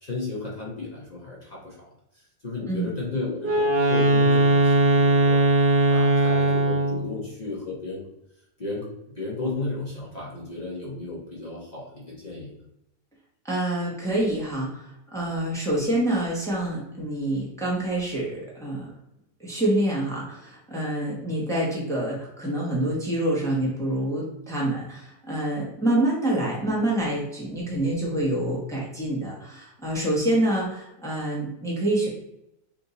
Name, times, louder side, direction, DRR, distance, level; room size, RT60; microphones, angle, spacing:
voice 1, 0.0-1.8 2.1-5.4 5.9-8.0 8.6-12.5, left 3 dB, 55° left, -5 dB, 0.4 m, -34 dB
Wind instrument woodwind instrument, 3.4-7.1, right 2 dB, 80° right, 1.4 m, -19 dB
voice 2, 13.4-18.9 19.4-32.1, right 1 dB, ahead, -5 dB, 0.7 m, -26 dB
3.5 x 2.6 x 4.0 m, 0.83 s
omnidirectional pair, 1.9 m